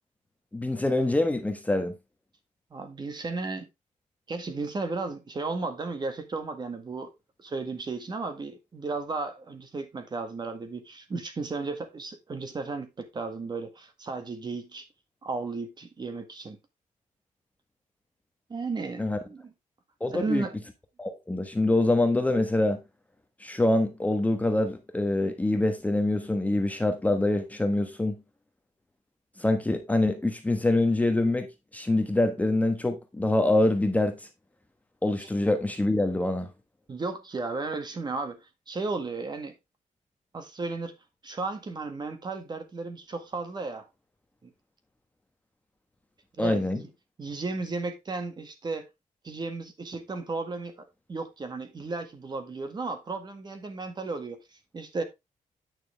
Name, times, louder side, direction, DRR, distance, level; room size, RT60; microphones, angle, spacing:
voice 1, 0.5-1.9 19.0-19.2 20.0-20.5 21.0-22.8 23.4-28.2 29.4-31.5 31.7-34.3 35.0-36.5 46.4-46.8, left 2 dB, 10° left, 1.2 m, -25 dB
voice 2, 2.7-3.7 4.3-7.1 7.4-14.9 15.2-16.6 18.5-19.5 20.1-20.5 36.9-38.4 38.7-39.5 40.3-40.9 41.2-43.9 44.4-44.5 46.4-46.9 47.2-48.9 49.2-50.8 51.1-54.4 54.7-55.0, right 3 dB, 35° right, 1.7 m, -34 dB
9.2 x 6.2 x 3.3 m
wide cardioid pair, 135°, 13 cm